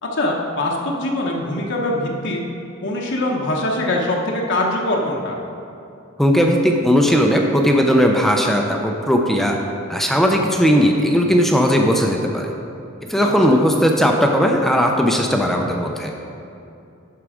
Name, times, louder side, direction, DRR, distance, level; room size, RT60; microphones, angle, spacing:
voice 1, 0.0-2.4 2.8-5.4 13.2-13.3, left 1 dB, 60° left, -1 dB, 0.9 m, -22 dB
voice 2, 6.2-9.6 9.9-12.5 13.1-16.1, equal, ahead, 2 dB, 0.5 m, -17 dB
11.0 x 4.7 x 4.9 m, 2.7 s
head